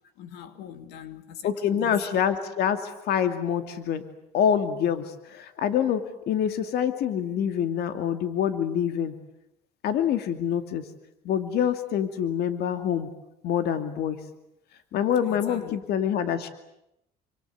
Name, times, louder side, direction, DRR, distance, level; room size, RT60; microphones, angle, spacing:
voice 1, 0.2-2.0 15.2-15.8, left 10 dB, 90° left, 10 dB, 2.6 m, -41 dB
voice 2, 1.4-4.0 4.3-9.2 9.8-10.9 11.2-13.1 13.4-14.2 14.9-16.5, left 9 dB, 75° left, 9 dB, 2.4 m, -26 dB
27.5 x 25.5 x 8.1 m, 0.82 s
cardioid pair, 110°, 17 cm